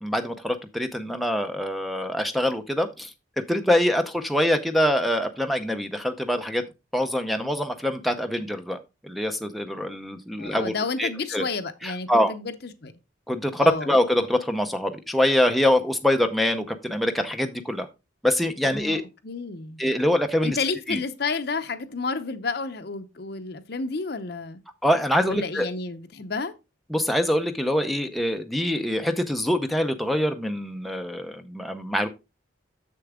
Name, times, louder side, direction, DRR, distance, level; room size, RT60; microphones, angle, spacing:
voice 1, 0.0-3.1 3.5-6.6 6.9-10.7 11.0-11.4 11.8-12.4 13.3-17.9 18.2-19.0 19.8-20.6 20.9-21.0 24.8-25.7 26.9-32.1, left 1 dB, ahead, 0.5 m, -24 dB
voice 2, 10.4-12.9 13.6-13.9 18.6-19.0 19.2-19.8 20.4-24.6 25.2-26.5, left 4 dB, 55° left, 0.7 m, -31 dB
7.0 x 6.7 x 3.6 m
head